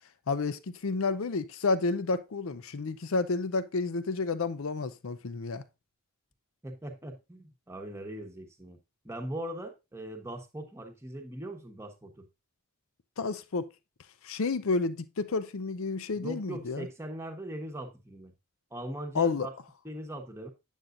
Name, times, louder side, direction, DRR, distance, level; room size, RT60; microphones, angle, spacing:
voice 1, 0.3-5.6 13.2-13.7 14.2-16.9 19.1-19.5, left 4 dB, 70° left, 0.6 m, -30 dB
voice 2, 6.6-8.8 9.0-12.2 16.2-18.3 18.7-19.5 19.8-20.5, right 1 dB, 10° right, 1.0 m, -40 dB
8.1 x 7.3 x 2.5 m
head